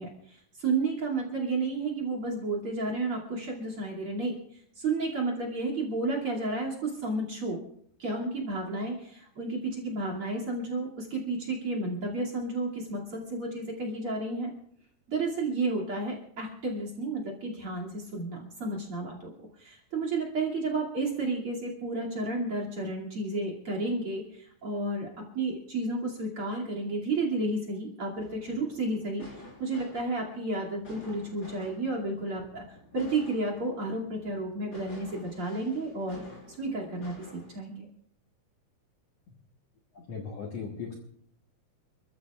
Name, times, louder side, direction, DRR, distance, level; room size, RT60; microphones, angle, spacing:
voice 1, 0.0-4.4 4.8-7.6 8.0-14.5 15.1-19.2 19.6-25.1 25.3-29.3 29.6-36.2 36.5-37.9, right 2 dB, 40° right, 1 dB, 3.1 m, -32 dB
sound 1, 28.2-37.6, left 1 dB, 30° left, 4.7 m, -51 dB
voice 2, 39.9-40.9, left 5 dB, 55° left, 0 dB, 2.0 m, -38 dB
29.5 x 14.0 x 2.4 m, 0.67 s
omnidirectional pair, 4.3 m